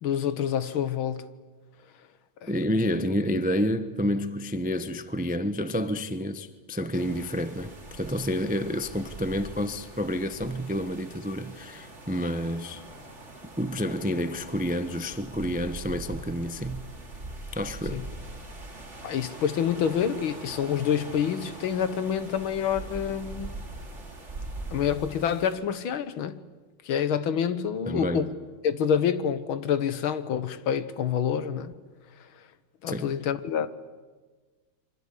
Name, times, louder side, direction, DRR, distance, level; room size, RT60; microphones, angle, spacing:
voice 1, 0.0-1.2 2.4-2.5 17.9-18.0 19.0-23.6 24.7-26.4 26.9-28.3 28.6-31.7 32.8-33.7, left 8 dB, 75° left, 2.0 m, -27 dB
voice 2, 2.5-12.8 13.6-16.8 17.5-18.0 27.9-28.3 32.9-33.1, equal, 10° right, 0.5 m, -29 dB
sound 1, 6.9-25.6, right 2 dB, 30° right, 3.7 m, -42 dB
27.0 x 24.5 x 8.5 m
omnidirectional pair, 2.3 m